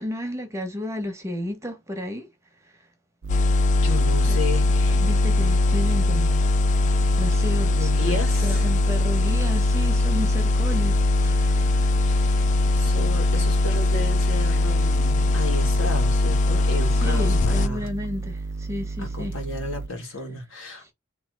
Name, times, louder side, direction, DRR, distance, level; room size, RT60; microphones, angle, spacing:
voice 1, 0.0-2.3 4.3-4.4 4.9-6.5 6.8-12.1 16.9-19.3 20.8-20.9, left 1 dB, 15° right, 1.2 m, -32 dB
sound 1, 3.2-19.9, right 3 dB, 60° right, 0.5 m, -33 dB
sound 2, 3.3-17.7, left 3 dB, 35° left, 0.3 m, -20 dB
voice 2, 3.8-5.1 7.7-8.7 12.0-12.5 12.7-17.9 19.0-20.9, left 2 dB, 75° left, 1.9 m, -33 dB
3.5 x 3.0 x 4.8 m
head